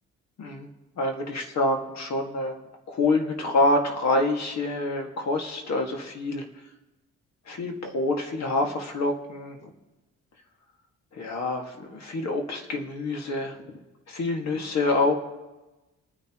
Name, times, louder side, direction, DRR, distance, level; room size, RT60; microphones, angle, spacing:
voice 1, 0.4-0.7 1.0-2.6 2.9-6.5 7.5-9.7 11.1-13.7 14.1-15.1, left 2 dB, 60° left, 3 dB, 2.0 m, -26 dB
23.5 x 9.7 x 3.1 m, 1.1 s
cardioid pair, 90°, 30 cm